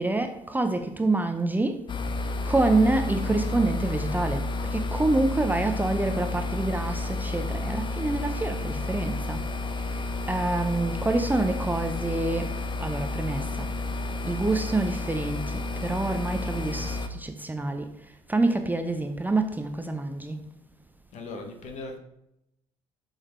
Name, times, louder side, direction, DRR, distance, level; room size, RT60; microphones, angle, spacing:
voice 1, 0.0-1.8 2.5-4.5 4.7-9.4 10.2-12.5 12.8-13.4 14.2-17.9 18.3-20.4, right 2 dB, 10° right, 6 dB, 0.7 m, -26 dB
sound 1, 1.9-17.1, left 2 dB, 30° left, 0.8 m, -31 dB
voice 2, 21.1-22.0, left 3 dB, 45° left, 3 dB, 1.4 m, -38 dB
7.3 x 6.5 x 3.2 m, 0.81 s
figure-of-eight pair, 55°, 16 cm